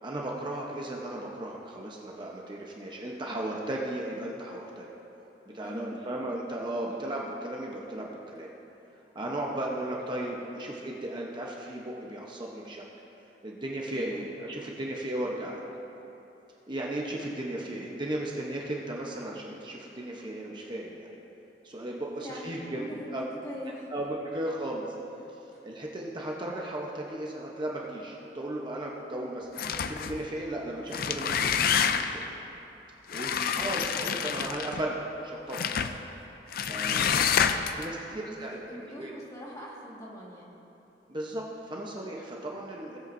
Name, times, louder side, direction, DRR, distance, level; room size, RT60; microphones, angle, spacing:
voice 1, 0.0-4.9 5.5-8.5 9.1-12.8 13.4-15.6 16.7-21.1 21.6-22.8 23.1-23.2 23.9-24.9 25.6-29.5 29.9-32.2 33.1-35.7 36.6-37.3 37.7-39.1 41.1-43.0, right 1 dB, 25° right, -2 dB, 0.8 m, -35 dB
voice 2, 5.6-5.9 13.9-14.2 22.2-23.9 33.2-33.8 36.8-37.4 38.1-40.5, equal, 20° left, -4 dB, 1.7 m, -43 dB
sound 1, 29.6-30.2 30.8-32.3 33.1-34.8 35.5-36.0 36.5-37.8, left 7 dB, 55° left, 0.4 m, -28 dB
18.0 x 8.2 x 2.6 m, 3.0 s
head